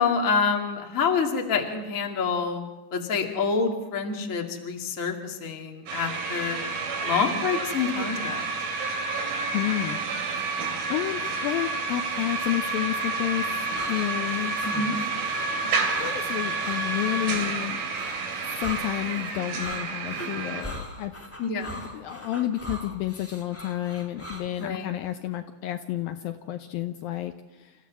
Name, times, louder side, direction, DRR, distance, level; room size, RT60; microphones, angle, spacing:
voice 1, 0.0-2.6 2.9-6.6 7.0-8.5 14.6-14.9 21.4-21.7 24.6-24.9, left 5 dB, 25° left, 3 dB, 1.8 m, -27 dB
sound 1, 5.9-20.6, right 4 dB, 65° right, 4.1 m, -30 dB
voice 2, 9.5-10.0 10.3-13.5 13.9-14.7 16.0-17.8 18.6-21.1 21.9-27.7, left 13 dB, 75° left, 7 dB, 2.3 m, -30 dB
sound 2, 13.4-24.7, equal, 5° left, 1.2 m, -40 dB
29.0 x 14.5 x 7.3 m, 1.2 s
omnidirectional pair, 4.6 m